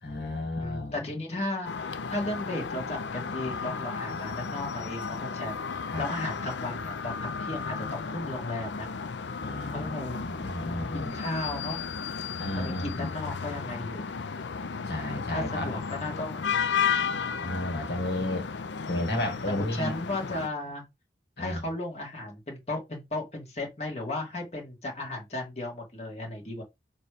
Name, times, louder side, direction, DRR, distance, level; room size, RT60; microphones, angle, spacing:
voice 1, 0.0-1.0 5.9-6.1 9.4-9.9 10.2-11.2 12.4-13.2 14.8-15.7 17.4-18.4 18.9-19.9 21.4-21.6, left 1 dB, 70° left, 2.1 m, -32 dB
voice 2, 0.6-9.1 9.5-10.3 10.9-11.9 12.6-14.1 15.3-16.5 17.0-17.5 19.6-20.8 21.4-26.6, left 2 dB, 35° left, 2.2 m, -35 dB
sound 1, 1.6-20.5, left 6 dB, 85° left, 0.6 m, -34 dB
6.7 x 3.2 x 5.0 m
head